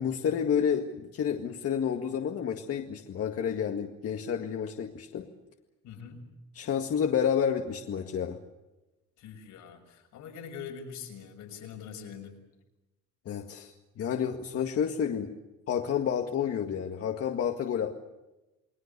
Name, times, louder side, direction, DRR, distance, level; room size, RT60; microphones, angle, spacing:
voice 1, 0.0-5.3 6.5-8.4 13.3-15.3 15.7-18.0, left 8 dB, 55° left, 3 dB, 2.0 m, -30 dB
voice 2, 5.8-6.3 9.2-12.4, left 7 dB, 85° left, 2 dB, 6.7 m, -43 dB
29.5 x 21.5 x 6.9 m, 1.0 s
cardioid pair, 165°, 29 cm